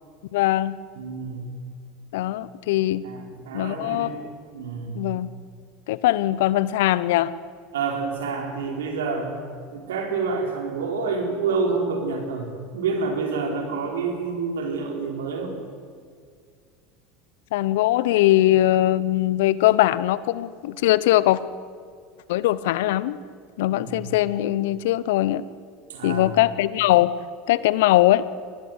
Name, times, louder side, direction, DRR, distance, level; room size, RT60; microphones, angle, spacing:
voice 1, 0.3-0.8 2.1-3.1 3.5-4.1 4.9-5.3 5.9-7.3 17.5-21.4 22.3-23.2 23.6-25.5 26.0-27.1 27.5-28.2, left 15 dB, 75° left, 18 dB, 0.8 m, -21 dB
voice 2, 1.0-1.5 3.0-4.2 4.5-5.1 7.7-9.4 9.7-15.5 23.7-24.1 25.9-26.3, right 4 dB, 80° right, 3 dB, 4.3 m, -28 dB
23.5 x 18.0 x 8.1 m, 2.1 s
hypercardioid pair, 85°, 0 cm